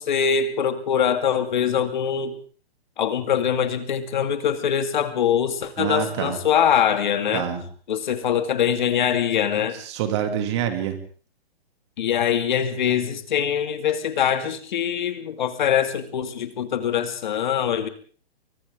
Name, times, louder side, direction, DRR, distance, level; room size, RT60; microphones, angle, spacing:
voice 1, 0.0-2.3 3.0-7.4 7.9-9.8 12.0-17.9, left 8 dB, 50° left, 9 dB, 2.4 m, -23 dB
voice 2, 5.8-6.4 7.3-7.6 9.7-11.0, right 9 dB, 30° right, 7 dB, 2.7 m, -26 dB
28.5 x 24.0 x 3.8 m, 0.41 s
hypercardioid pair, 170°, 30 cm